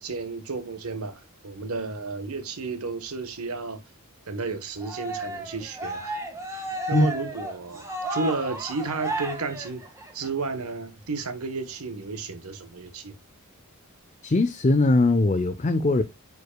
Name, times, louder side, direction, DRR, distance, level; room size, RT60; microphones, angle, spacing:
voice 1, 0.0-3.8 4.3-6.2 6.5-9.8 10.1-13.2, right 3 dB, 80° right, 1.2 m, -32 dB
Cheering, 4.8-10.3, right 2 dB, 15° right, 1.4 m, -33 dB
voice 2, 14.2-16.0, left 2 dB, 30° left, 0.5 m, -20 dB
9.4 x 4.8 x 2.2 m
head